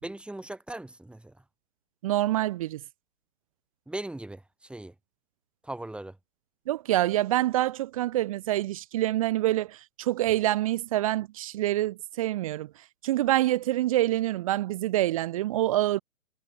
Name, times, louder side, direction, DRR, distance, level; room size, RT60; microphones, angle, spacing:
voice 1, 0.0-1.3 3.9-4.9 5.6-6.1, right 1 dB, 5° right, 3.5 m, -39 dB
voice 2, 2.0-2.8 6.7-12.7 13.0-16.0, right 15 dB, 25° right, 0.6 m, -26 dB
figure-of-eight pair, 130°, 39 cm